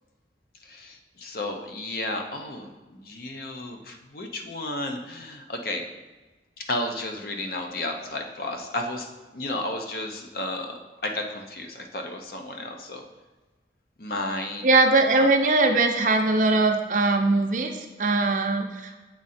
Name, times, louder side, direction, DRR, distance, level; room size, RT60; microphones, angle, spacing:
voice 1, 0.6-5.9 6.7-13.0 14.0-14.6 15.2-15.3, left 1 dB, 55° left, 3 dB, 0.7 m, -33 dB
voice 2, 14.6-19.0, right 3 dB, 45° right, 4 dB, 0.6 m, -21 dB
7.8 x 3.7 x 4.2 m, 1.2 s
head